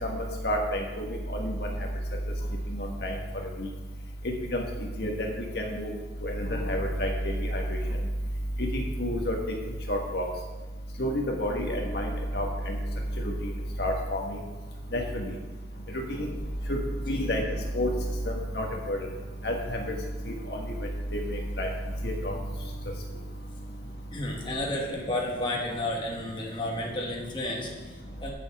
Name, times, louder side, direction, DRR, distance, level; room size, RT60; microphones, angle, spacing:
voice 1, 0.4-0.8 1.3-1.5 3.0-3.1 4.5-4.6 5.0-5.1 5.5-5.9 6.2-7.1 7.5-7.6 8.7-9.3 9.9-10.2 11.0-11.1 11.4-12.1 12.3-12.4 13.8-14.2 14.9-15.2 16.1-16.3 16.7-16.8 17.1-17.4 17.7-17.9 18.3-19.0 19.4-19.5 21.1-21.2 21.6-21.7 22.0-22.3, equal, 60° left, 1 dB, 1.6 m, -28 dB
voice 2, 24.1-28.3, left 1 dB, 25° left, -2 dB, 1.4 m, -32 dB
15.5 x 6.9 x 3.6 m, 1.2 s
head